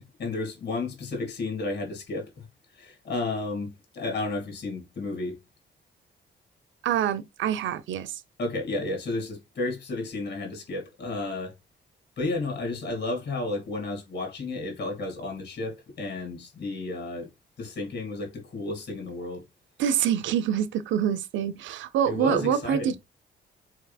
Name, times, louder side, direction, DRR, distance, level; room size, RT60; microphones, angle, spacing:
voice 1, 0.0-2.4 2.7-5.4 8.4-11.5 12.2-17.3 17.6-19.4 22.1-23.0, left 2 dB, 55° left, 2.3 m, -32 dB
voice 2, 6.8-8.2 19.8-23.0, right 9 dB, 75° right, 0.6 m, -26 dB
4.4 x 3.6 x 2.3 m
supercardioid pair, 60°, 20 cm